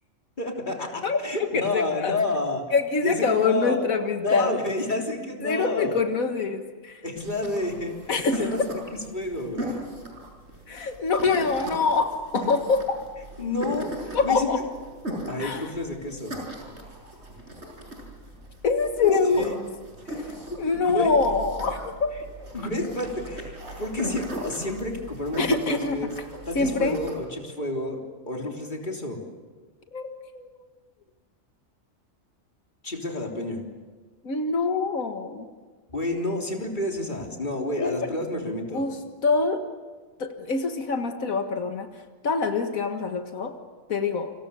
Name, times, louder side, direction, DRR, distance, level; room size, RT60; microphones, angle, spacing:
voice 1, 0.4-2.6 3.0-3.8 4.2-6.0 7.0-7.9 8.4-8.7 9.1-9.8 13.4-14.6 15.3-16.4 19.3-19.6 20.5-21.1 22.5-26.1 26.5-28.0 28.3-29.2 32.8-33.6 35.9-38.9, left 2 dB, 35° left, 1 dB, 3.6 m, -30 dB
voice 2, 1.0-1.5 1.7-2.2 2.7-4.6 5.4-7.0 8.1-8.7 10.7-13.0 14.1-14.6 15.4-15.6 18.6-19.6 20.6-22.1 25.4-26.0 26.6-27.0 29.9-30.5 34.2-35.5 37.8-38.0 38.7-39.7 40.2-41.9 42.2-43.6 43.9-44.3, left 4 dB, 90° left, 6 dB, 2.0 m, -25 dB
sound 1, 7.2-27.1, right 1 dB, 55° right, 6.9 m, -38 dB
30.0 x 26.0 x 7.0 m, 1.4 s
omnidirectional pair, 1.4 m